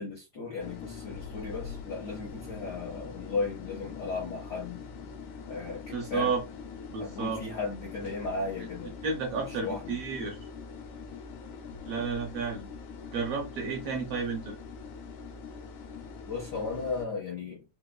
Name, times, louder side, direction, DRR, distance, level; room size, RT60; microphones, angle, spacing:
voice 1, 0.0-4.8 5.5-6.3 7.0-8.9 9.5-10.0 16.3-17.6, left 4 dB, 70° left, 0.9 m, -35 dB
sound 1, 0.6-17.1, left 5 dB, 85° left, 2.0 m, -43 dB
voice 2, 5.9-6.4 6.9-7.4 9.0-10.4 11.9-12.7 13.1-14.6, right 5 dB, 75° right, 1.5 m, -32 dB
4.6 x 2.3 x 2.3 m
omnidirectional pair, 3.4 m